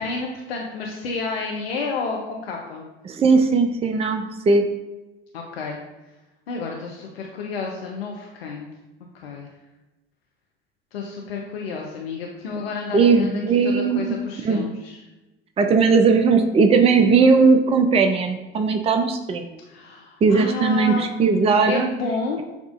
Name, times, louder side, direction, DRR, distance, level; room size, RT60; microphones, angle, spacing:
voice 1, 0.0-2.8 5.3-5.8 6.5-8.7 9.1-9.5 10.9-15.0 19.7-21.1 21.7-22.4, left 4 dB, 85° left, 0 dB, 0.5 m, -30 dB
voice 2, 3.1-4.7 12.9-14.2 14.4-14.7 15.6-19.5 20.2-21.9, right 4 dB, 20° right, 6 dB, 0.4 m, -18 dB
7.1 x 2.4 x 2.4 m, 1.0 s
hypercardioid pair, 60°, 30 cm